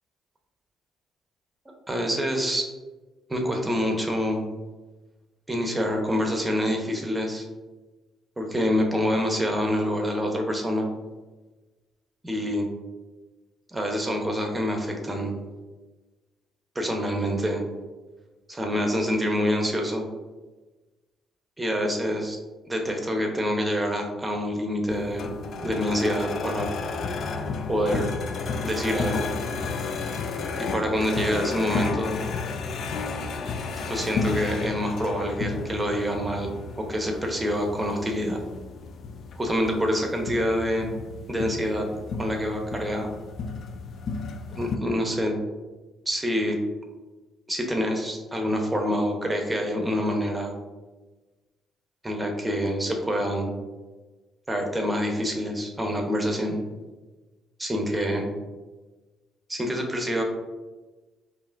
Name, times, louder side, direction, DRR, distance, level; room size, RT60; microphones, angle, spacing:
voice 1, 1.9-2.7 3.3-4.4 5.5-7.4 8.4-10.9 12.2-12.7 13.7-15.3 16.7-17.6 18.5-20.1 21.6-22.4 22.7-25.3 25.6-26.7 27.7-28.1 28.6-29.2 30.6-32.2 33.8-38.4 39.3-40.9 41.3-41.9 42.2-43.1 44.5-45.3 46.1-46.6 47.5-50.5 52.0-53.5 54.5-56.6 57.6-58.3 59.5-60.2, equal, 15° right, 2 dB, 0.9 m, -26 dB
sound 1, 24.9-44.8, left 4 dB, 65° left, 0.4 m, -32 dB
5.2 x 2.6 x 2.6 m, 1.2 s
supercardioid pair, 55°, 0 cm